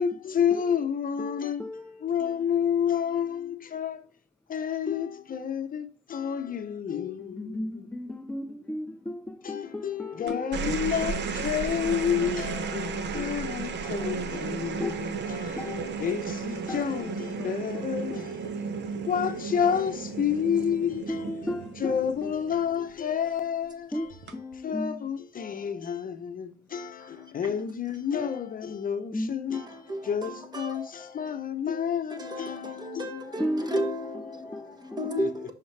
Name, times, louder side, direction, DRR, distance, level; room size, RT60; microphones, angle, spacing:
voice 1, 0.0-1.6 2.0-4.1 4.5-8.0 9.4-21.3 21.8-24.1 24.6-33.4 34.5-35.3, left 8 dB, 45° left, 0.7 m, -30 dB
voice 2, 1.2-2.1 7.2-11.6 11.8-12.0 12.2-12.3 14.8-15.1 15.6-15.9 16.7-16.9 17.4-18.7 21.1-22.4 23.9-25.1 29.1-29.7 33.4-33.8 34.5-35.1, left 1 dB, 5° left, 0.3 m, -36 dB
sound 1, 10.3-22.9 24.1-24.5, right 5 dB, 60° right, 0.8 m, -34 dB
voice 3, 27.0-27.3 29.5-30.9 32.1-35.5, equal, 20° right, 1.3 m, -34 dB
5.7 x 5.4 x 3.3 m
cardioid pair, 90°, 20 cm